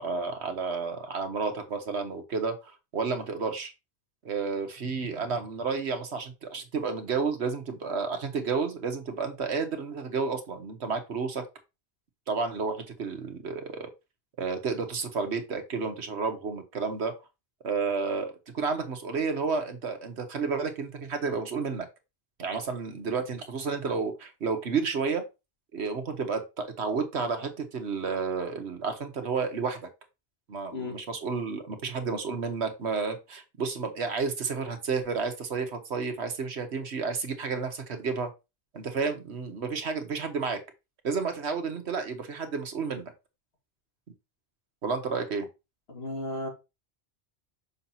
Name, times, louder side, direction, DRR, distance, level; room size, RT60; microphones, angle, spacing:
voice 1, 0.0-3.7 4.2-11.4 12.3-13.9 14.4-17.1 17.6-21.9 22.4-25.2 25.7-29.9 30.5-38.3 38.7-40.6 41.0-43.1 44.8-45.5, right 5 dB, 80° right, 1.5 m, -31 dB
voice 2, 45.9-46.5, left 2 dB, 70° left, 2.4 m, -34 dB
6.4 x 5.6 x 2.9 m
omnidirectional pair, 1.1 m